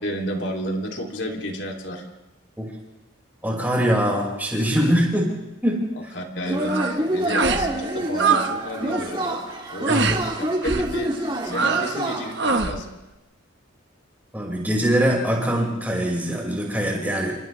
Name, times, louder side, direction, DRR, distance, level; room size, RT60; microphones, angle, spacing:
voice 1, 0.0-2.1 5.9-9.4 9.7-10.1 10.6-12.9, equal, 60° left, 1 dB, 3.1 m, -31 dB
voice 2, 3.4-5.3 5.6-6.1 9.9-10.2 14.3-17.4, equal, 10° right, -2 dB, 5.6 m, -23 dB
Yell / Cheering, 6.4-12.6, right 1 dB, 25° right, 2.7 m, -27 dB
sound 1, 6.6-7.0 7.3-7.7 7.9-8.5 8.8-9.1 9.9-10.2 10.6-10.9 11.5-12.0 12.3-12.8, right 4 dB, 60° right, 1.3 m, -23 dB
29.0 x 26.5 x 3.4 m, 0.98 s
head